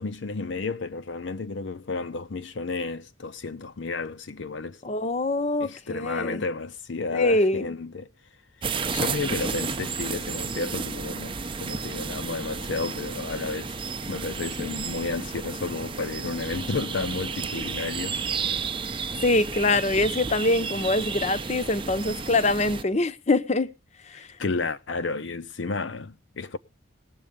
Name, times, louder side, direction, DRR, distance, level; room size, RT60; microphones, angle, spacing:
voice 1, 0.0-4.8 5.6-8.1 8.6-13.7 14.1-18.2 24.1-26.6, left 3 dB, 65° left, 0.6 m, -32 dB
voice 2, 4.8-6.4 7.1-7.7 19.2-23.7 24.1-24.3, left 2 dB, 35° left, 0.7 m, -24 dB
sound 1, 8.6-22.8, right 5 dB, 25° right, 0.6 m, -32 dB
19.0 x 7.6 x 5.2 m
head